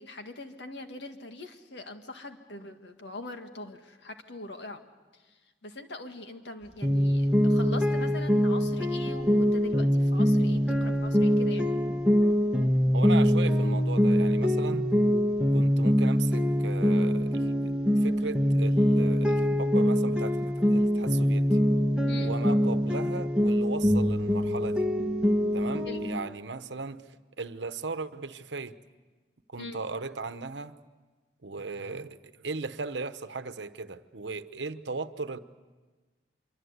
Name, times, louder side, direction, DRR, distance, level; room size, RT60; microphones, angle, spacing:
voice 1, 0.0-4.8 5.1-11.7 22.1-22.3 25.8-26.1 29.6-29.8, left 2 dB, 75° left, 6 dB, 1.9 m, -42 dB
sound 1, 6.8-26.2, equal, 5° right, 1.3 m, -24 dB
voice 2, 12.9-14.9 15.5-17.6 18.0-21.6 22.2-24.9 25.5-28.8 29.5-30.8 31.4-35.4, right 4 dB, 80° right, 11 dB, 1.0 m, -37 dB
25.5 x 24.0 x 8.1 m, 1.3 s
head